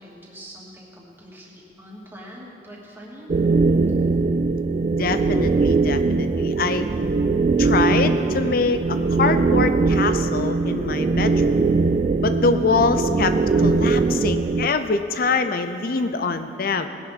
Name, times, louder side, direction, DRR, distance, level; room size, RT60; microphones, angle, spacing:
voice 1, 0.0-3.3, equal, 10° right, -5 dB, 2.5 m, -43 dB
sound 1, 3.3-14.7, right 3 dB, 35° right, 0.4 m, -21 dB
voice 2, 4.8-6.9 7.6-11.6 12.2-16.9, left 4 dB, 55° left, 9 dB, 0.6 m, -24 dB
19.5 x 11.0 x 4.2 m, 2.9 s
head